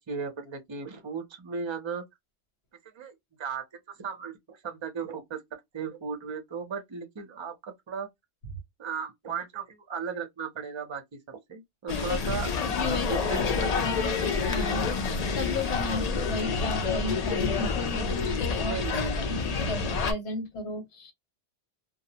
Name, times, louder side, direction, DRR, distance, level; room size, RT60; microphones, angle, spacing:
voice 1, 0.1-2.0 2.9-3.6 4.0-5.4 5.7-8.1 8.8-11.0 11.3-12.5 12.9-14.2 18.7-19.4, right 6 dB, 35° right, 0.5 m, -36 dB
sound 1, 11.9-20.1, left 4 dB, 55° left, 0.5 m, -28 dB
voice 2, 12.1-18.8 19.2-21.1, left 3 dB, 85° left, 1.1 m, -34 dB
2.3 x 2.0 x 2.7 m
omnidirectional pair, 1.1 m